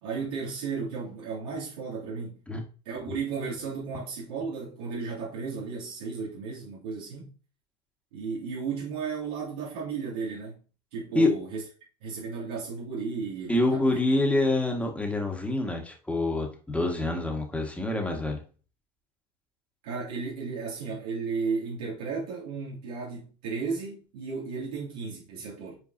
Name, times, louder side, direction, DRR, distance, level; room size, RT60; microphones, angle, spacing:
voice 1, 0.0-2.4 2.8-7.3 8.1-10.6 10.9-11.6 12.0-14.0 19.8-25.8, right 5 dB, 70° right, 3.1 m, -34 dB
voice 2, 13.5-18.4, left 2 dB, 5° left, 2.0 m, -26 dB
8.3 x 4.5 x 2.9 m
hypercardioid pair, 90°, 21 cm